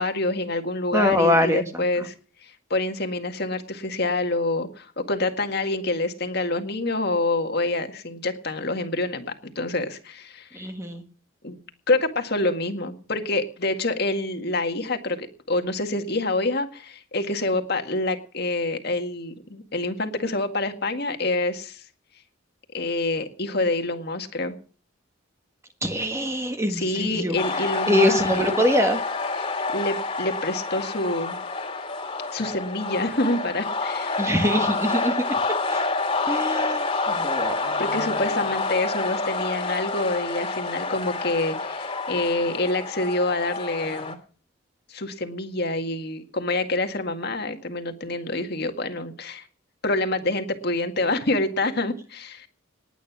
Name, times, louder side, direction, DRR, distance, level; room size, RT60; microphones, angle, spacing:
voice 1, 0.0-2.1 2.4-10.6 11.4-11.6 11.9-21.8 22.7-24.6 26.7-28.4 29.3-31.4 32.3-34.4 37.8-44.2 44.9-49.5 49.8-52.5, left 2 dB, 50° left, 6 dB, 1.9 m, -27 dB
voice 2, 0.9-1.6 10.5-11.0 25.8-27.4 27.9-29.0 34.2-35.3 35.7-35.8 36.3-36.8 37.2-37.8, equal, 15° right, 6 dB, 1.7 m, -23 dB
sound 1, 27.4-44.1, left 3 dB, 25° left, 2.5 m, -28 dB
19.5 x 9.3 x 6.1 m, 0.42 s
head